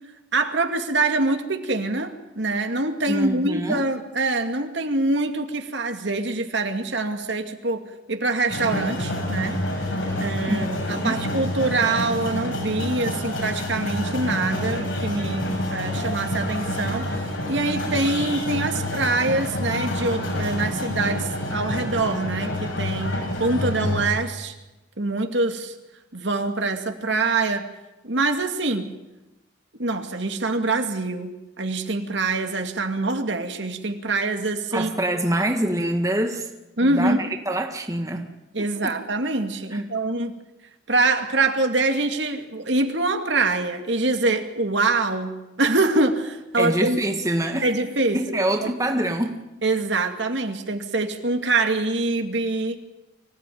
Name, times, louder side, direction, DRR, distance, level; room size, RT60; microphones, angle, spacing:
voice 1, 0.3-9.6 10.2-17.1 17.5-24.6 25.0-25.7 26.1-27.7 28.0-29.0 29.8-34.9 36.8-37.3 38.5-40.3 40.9-47.0 47.6-48.7 49.6-52.8, right 2 dB, 70° right, 6 dB, 2.3 m, -24 dB
voice 2, 3.1-3.9 10.5-11.2 34.7-36.5 36.8-38.3 38.6-38.9 39.7-39.8 46.6-47.7 48.1-49.4, right 1 dB, 15° right, 4 dB, 1.7 m, -25 dB
sound 1, 8.5-24.1, left 1 dB, 80° left, 7.5 m, -28 dB
25.0 x 16.5 x 9.4 m, 0.99 s
head